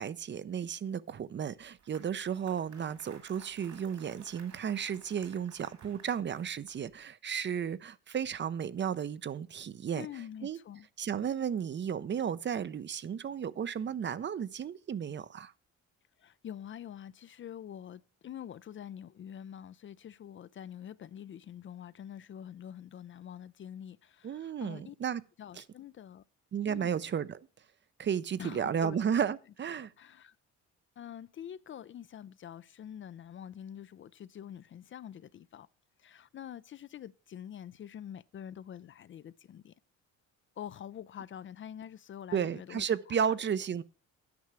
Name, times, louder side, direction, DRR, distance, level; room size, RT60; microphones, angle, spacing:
voice 1, 0.0-10.6 11.0-15.5 24.2-25.2 25.6-25.7 26.5-27.5 28.0-29.9 42.3-43.8, right 8 dB, 40° right, 0.5 m, -33 dB
Applause, 1.5-7.0, right 6 dB, 70° right, 2.7 m, -56 dB
voice 2, 10.0-10.9 16.2-25.0 25.4-26.2 26.7-26.9 28.4-29.1 29.8-30.3 31.0-35.7 36.0-39.7 40.6-42.8, left 10 dB, 40° left, 0.4 m, -46 dB
9.5 x 5.6 x 6.1 m
cardioid pair, 90°, 30 cm